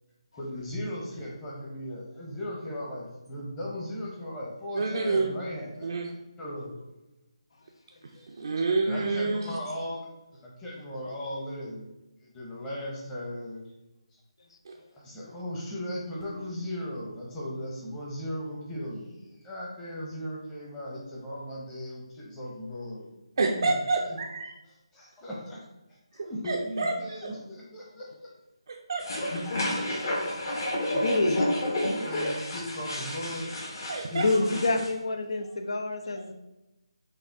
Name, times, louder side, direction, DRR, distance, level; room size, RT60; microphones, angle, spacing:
voice 1, 0.4-5.9 6.4-6.7 8.8-10.1 10.3-11.9 12.2-13.6 14.1-14.2 14.9-23.1 23.5-23.7 24.0-24.2 24.9-25.6 25.9-28.3 30.2-30.3 31.0-31.3 32.0-33.5 34.1-34.7, equal, 10° left, -6 dB, 0.9 m, -37 dB
voice 2, 4.7-5.5 5.8-6.1 8.3-9.5 14.7-14.8 23.4-24.5 26.2-26.9 28.7-29.6 33.9-34.2, right 3 dB, 50° right, 0 dB, 0.5 m, -28 dB
voice 3, 8.1-8.6 14.8-14.9 15.2-15.4 30.9-31.5 32.2-32.3 34.1-36.3, left 2 dB, 60° left, 5 dB, 0.6 m, -29 dB
sound 1, 29.0-34.9, left 1 dB, 40° left, 1.2 m, -31 dB
5.3 x 2.4 x 3.5 m, 0.97 s
figure-of-eight pair, 160°, 3 cm